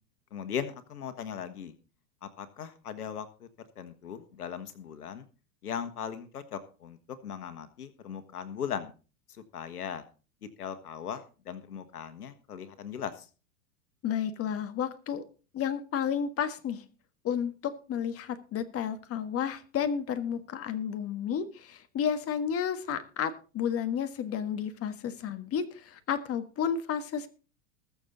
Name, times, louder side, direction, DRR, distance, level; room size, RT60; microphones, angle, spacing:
voice 1, 0.3-1.7 2.2-3.5 3.8-5.2 5.6-7.0 7.2-8.9 9.3-10.0 10.4-13.3, left 8 dB, 85° left, 11 dB, 1.6 m, -38 dB
voice 2, 14.0-15.2 15.5-16.8 17.2-27.3, left 8 dB, 30° left, 10 dB, 1.6 m, -32 dB
20.5 x 7.1 x 3.9 m, 0.35 s
hypercardioid pair, 100°, 44 cm